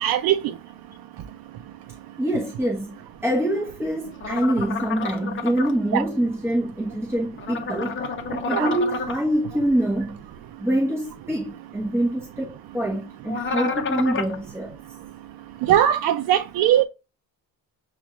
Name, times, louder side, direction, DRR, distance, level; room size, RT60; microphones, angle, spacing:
voice 1, 0.0-0.5 5.9-6.0 8.5-8.8 15.6-16.8, right 11 dB, 75° right, 0.5 m, -20 dB
voice 2, 2.2-3.0 3.2-8.0 8.3-10.2 10.6-14.7, right 1 dB, 5° right, 0.9 m, -25 dB
sound 1, 4.2-5.7 7.4-9.2 13.3-14.4, left 5 dB, 35° left, 0.7 m, -29 dB
6.9 x 2.4 x 3.0 m
cardioid pair, 130°, 35 cm